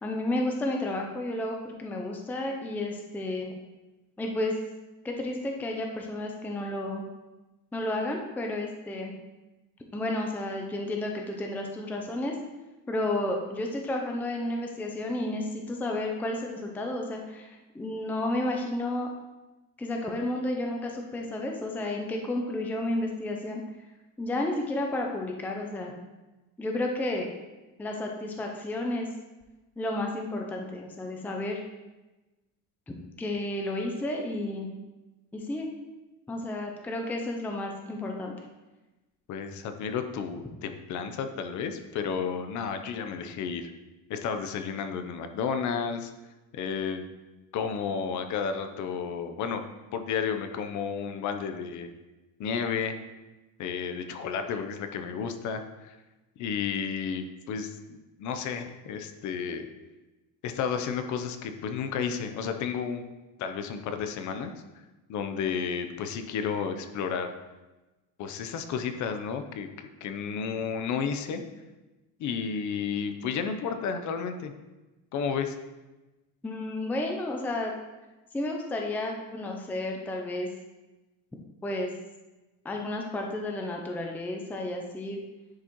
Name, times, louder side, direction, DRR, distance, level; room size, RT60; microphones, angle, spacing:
voice 1, 0.0-3.5 4.2-4.6 5.0-7.0 7.7-9.1 9.9-12.3 12.9-19.1 19.8-23.6 24.2-25.9 26.6-27.3 27.8-29.1 29.8-31.6 33.2-34.7 35.3-35.7 36.3-38.3 76.4-77.7 78.3-80.5 81.6-81.9 82.6-85.2, left 1 dB, 5° left, 1 dB, 0.4 m, -32 dB
voice 2, 39.3-43.7 44.1-46.1 46.5-47.0 47.5-49.6 49.9-51.9 52.4-53.0 53.6-56.0 56.4-59.7 60.4-63.0 63.4-64.5 65.1-67.3 68.2-69.7 70.0-71.4 72.2-74.5 75.1-75.5, left 6 dB, 50° left, 8 dB, 0.7 m, -32 dB
10.5 x 4.9 x 3.0 m, 1.1 s
cardioid pair, 155°, 38 cm